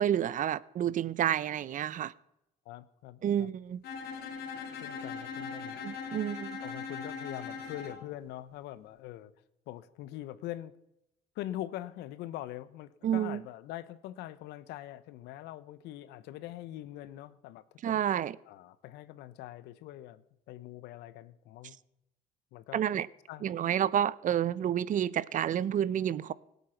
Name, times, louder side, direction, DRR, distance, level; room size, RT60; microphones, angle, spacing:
voice 1, 0.0-2.1 3.2-3.8 5.8-6.6 13.0-13.4 17.8-18.4 22.7-23.1 23.4-26.3, right 10 dB, 50° right, 0.7 m, -29 dB
voice 2, 2.6-3.5 4.8-5.8 6.1-6.2 6.6-9.3 9.7-10.7 11.3-18.0 18.4-21.8 22.5-22.8 23.3-23.5, left 14 dB, 90° left, 1.0 m, -43 dB
Bowed string instrument, 3.8-8.0, left 5 dB, 70° left, 3.1 m, -40 dB
25.0 x 8.3 x 5.9 m
cardioid pair, 110°, 17 cm